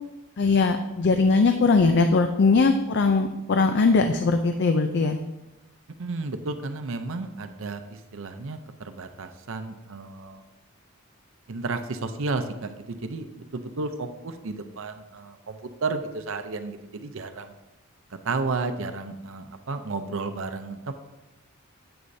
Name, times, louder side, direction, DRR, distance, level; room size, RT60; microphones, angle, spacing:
voice 1, 0.4-5.2, left 4 dB, 55° left, 7 dB, 0.5 m, -20 dB
voice 2, 6.0-10.4 11.5-17.5 18.1-20.9, right 3 dB, 65° right, 8 dB, 0.6 m, -32 dB
9.6 x 7.9 x 2.7 m, 0.99 s
head